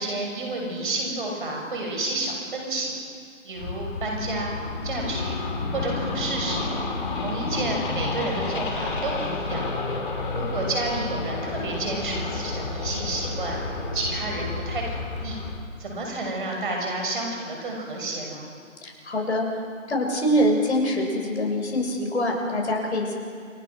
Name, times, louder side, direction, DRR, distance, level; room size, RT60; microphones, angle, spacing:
voice 1, 0.0-2.9 3.4-4.6 4.8-5.4 5.7-6.7 7.2-9.7 10.3-13.6 13.9-15.4 15.8-18.5, right 2 dB, 40° right, 0 dB, 6.9 m, -30 dB
sound 1, 3.6-15.6, left 3 dB, 40° left, 3.3 m, -30 dB
voice 2, 18.8-19.5 19.9-23.1, equal, 55° left, 1 dB, 6.6 m, -24 dB
29.5 x 20.0 x 6.2 m, 2.3 s
figure-of-eight pair, 165°, 40 cm